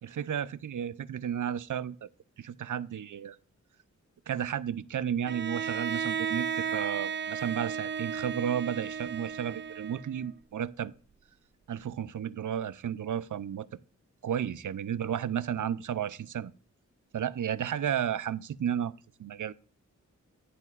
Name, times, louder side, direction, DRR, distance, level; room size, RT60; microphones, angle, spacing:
voice 1, 0.0-2.1 2.4-3.4 4.3-10.9 11.7-13.7 14.2-16.5 17.1-18.9 19.2-19.5, right 9 dB, 80° right, 0.6 m, -33 dB
Bowed string instrument, 5.2-10.3, right 7 dB, 40° right, 0.4 m, -34 dB
15.0 x 10.0 x 2.5 m
wide cardioid pair, 130°, 30 cm